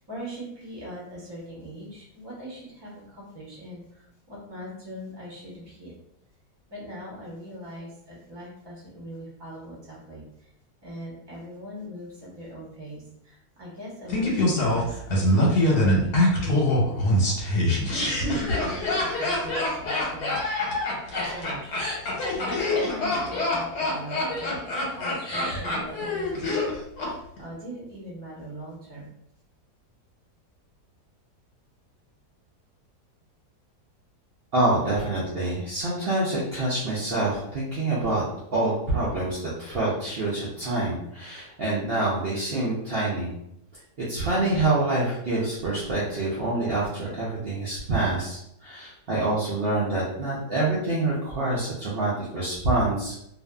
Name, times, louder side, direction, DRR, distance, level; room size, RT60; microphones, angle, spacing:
voice 1, 0.0-6.0 6.7-10.5 10.8-17.4 17.9-20.6 21.1-22.1 22.3-26.8 27.1-29.1, equal, 25° right, -6 dB, 0.5 m, -41 dB
Laughter, 14.1-27.1 27.4-27.5, left 1 dB, 80° left, 1.3 m, -24 dB
voice 2, 34.5-38.2 38.5-43.3 44.0-53.3, right 2 dB, 70° right, -7 dB, 0.5 m, -26 dB
2.5 x 2.5 x 2.2 m, 0.76 s
omnidirectional pair, 1.7 m